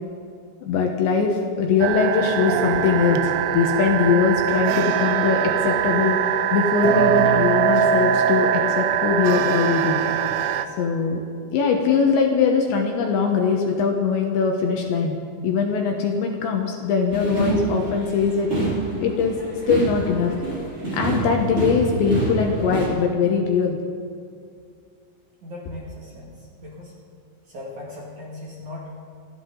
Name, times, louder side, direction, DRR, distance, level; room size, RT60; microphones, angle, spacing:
voice 1, 0.6-10.0 10.8-11.2 11.5-15.2 15.4-18.5 19.0-19.4 19.7-20.3 20.9-23.8, left 5 dB, 70° left, 2 dB, 3.0 m, -21 dB
sound 1, 1.8-10.7, right 9 dB, 90° right, 3.6 m, -22 dB
sound 2, 17.1-22.9, right 2 dB, 15° right, 2.7 m, -27 dB
voice 2, 25.4-26.9 27.5-28.9, left 1 dB, 45° right, -4 dB, 2.9 m, -38 dB
27.0 x 13.0 x 3.9 m, 2.3 s
omnidirectional pair, 6.0 m